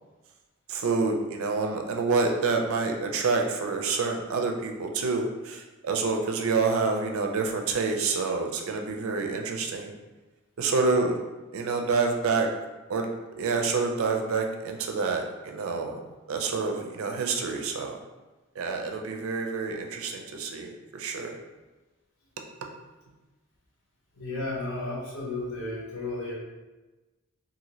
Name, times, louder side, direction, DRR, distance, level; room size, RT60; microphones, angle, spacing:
voice 1, 0.7-9.9 10.6-11.2 11.5-12.5 12.9-13.1 13.4-15.9 16.3-18.0 18.6-21.4, right 4 dB, 80° right, 3 dB, 0.4 m, -27 dB
voice 2, 24.1-26.3, left 2 dB, 85° left, -6 dB, 1.0 m, -33 dB
2.6 x 2.6 x 3.0 m, 1.2 s
head